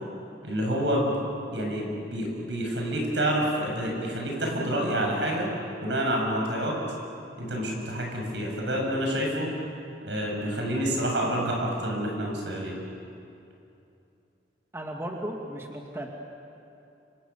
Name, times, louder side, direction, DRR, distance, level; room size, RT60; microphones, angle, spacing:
voice 1, 0.4-1.1 1.5-5.5 5.8-6.8 7.4-9.5 10.1-12.8, equal, 80° right, 0 dB, 7.5 m, -28 dB
voice 2, 14.7-16.1, right 1 dB, 15° right, 0 dB, 2.2 m, -35 dB
30.0 x 26.5 x 7.3 m, 2.7 s
head